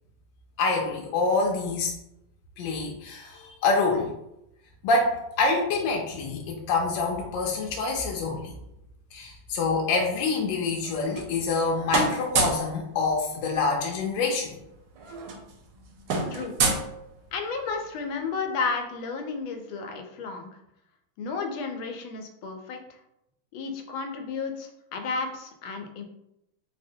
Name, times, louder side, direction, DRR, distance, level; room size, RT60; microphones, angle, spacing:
voice 1, 0.6-1.9 2.6-4.1 4.8-8.5 9.1-14.6, left 3 dB, 75° left, -1 dB, 1.2 m, -26 dB
sound 1, 10.8-11.6 11.9-12.7 14.1-14.2 14.4-14.6 14.9-17.5, right 3 dB, 75° right, 1.1 m, -28 dB
voice 2, 17.3-20.5 21.2-22.8 23.5-26.0, left 4 dB, 90° left, 4 dB, 1.4 m, -32 dB
3.9 x 2.1 x 2.7 m, 0.83 s
omnidirectional pair, 2.2 m